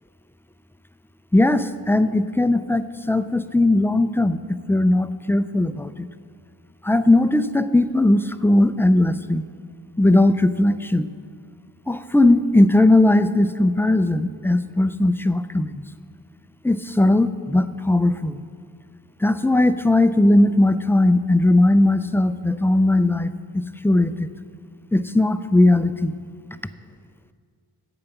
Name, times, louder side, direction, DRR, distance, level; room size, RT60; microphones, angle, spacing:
voice 1, 1.3-4.4 4.7-5.9 6.8-9.4 10.0-11.1 11.9-15.8 16.6-18.4 19.2-23.3 23.8-24.3 24.9-26.1, left 1 dB, 5° left, 12 dB, 0.3 m, -18 dB
8.7 x 8.0 x 5.9 m, 2.1 s
cardioid pair, 50°, 43 cm